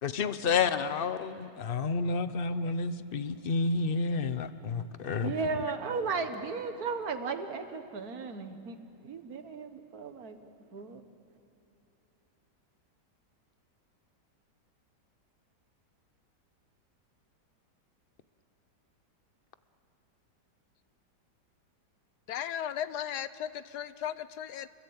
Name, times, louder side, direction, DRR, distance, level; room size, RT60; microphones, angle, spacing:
voice 1, 0.0-5.3, left 4 dB, 45° left, 12 dB, 0.8 m, -30 dB
voice 2, 5.2-8.8 9.0-11.0, right 4 dB, 55° right, 7 dB, 1.9 m, -35 dB
voice 3, 22.3-24.7, left 10 dB, 70° left, 14 dB, 1.3 m, -36 dB
29.0 x 22.0 x 8.8 m, 2.9 s
omnidirectional pair, 1.9 m